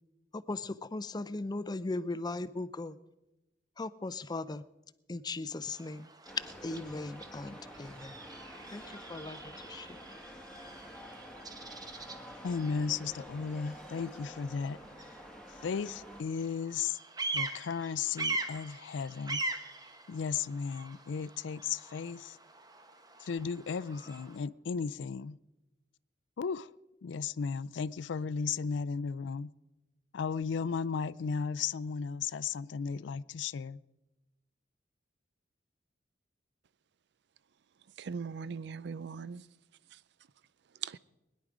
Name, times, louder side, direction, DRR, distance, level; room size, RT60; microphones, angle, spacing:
voice 1, 0.3-3.0 3.8-4.6 5.1-6.1 6.6-8.1 8.7-9.4 9.7-10.0, left 2 dB, 25° left, 0.5 m, -38 dB
Bird vocalization bird call bird song, 5.6-24.4, right 2 dB, 20° right, 1.0 m, -43 dB
sound 1, 6.3-16.2, equal, 5° left, 1.3 m, -49 dB
voice 2, 12.4-14.8 15.6-17.0 17.3-19.4 20.1-22.4 23.2-25.4 26.4-26.7 27.0-29.5 30.1-33.8, left 6 dB, 80° left, 0.4 m, -35 dB
voice 3, 38.0-39.5 39.9-40.0 40.8-41.0, right 6 dB, 65° right, 0.4 m, -39 dB
21.0 x 10.5 x 4.9 m
head